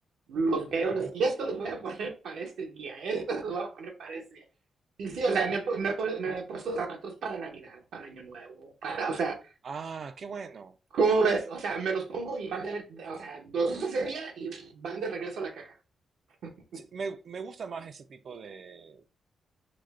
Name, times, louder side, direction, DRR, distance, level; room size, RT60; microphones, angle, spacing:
voice 1, 0.3-4.4 5.0-9.3 10.9-15.7, right 4 dB, 90° right, 0.8 m, -31 dB
voice 2, 9.6-10.8 16.7-19.1, right 5 dB, 60° right, 0.4 m, -40 dB
4.9 x 2.1 x 2.4 m
cardioid pair, 90°, 0 cm